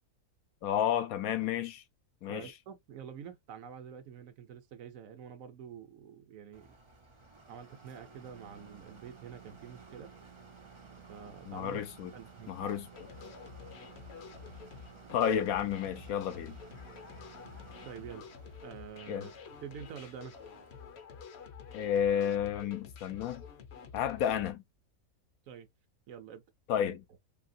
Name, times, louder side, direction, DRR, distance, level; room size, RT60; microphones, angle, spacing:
voice 1, 0.6-1.8 2.2-2.5 11.5-12.1 12.5-12.9 15.1-16.6 19.1-19.3 21.7-23.4 23.9-24.6 26.7-27.0, left 9 dB, 80° left, 1.0 m, -31 dB
voice 2, 2.3-6.7 7.5-10.1 11.1-11.8 12.1-12.8 13.2-13.3 17.8-18.2 18.6-19.3 19.6-20.3 25.5-25.7 26.1-26.4, right 8 dB, 70° right, 1.0 m, -47 dB
sound 1, 6.5-21.2, right 5 dB, 45° right, 0.4 m, -54 dB
sound 2, 12.9-24.5, left 6 dB, 55° left, 0.8 m, -49 dB
2.8 x 2.7 x 2.6 m
omnidirectional pair, 1.5 m